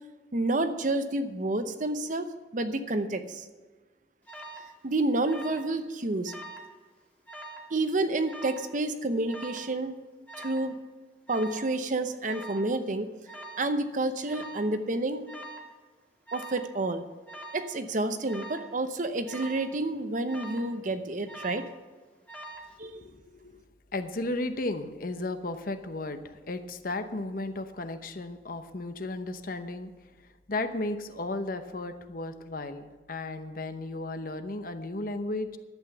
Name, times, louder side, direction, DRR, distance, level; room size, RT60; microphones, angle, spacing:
voice 1, 0.3-2.3 2.5-3.4 4.8-6.3 7.7-10.0 10.4-10.7 11.3-13.1 13.6-15.3 16.3-17.0 17.5-21.7 22.8-23.0, right 2 dB, 45° right, 9 dB, 0.8 m, -29 dB
Alarm, 4.3-4.7 5.2-5.7 6.0-6.7 7.3-7.7 8.3-8.7 9.3-9.7 10.3-10.7 11.3-11.7 12.3-12.7 13.3-13.7 14.3-14.7 15.3-15.7 16.3-16.7 17.3-17.7 18.3-18.7 19.3-19.7 20.3-20.7 21.3-21.8 22.3-22.7, right 2 dB, 10° left, 1.7 m, -43 dB
voice 2, 22.8-23.6 23.9-29.9 30.5-35.6, left 2 dB, 50° left, 8 dB, 0.9 m, -34 dB
11.5 x 8.1 x 6.8 m, 1.3 s
head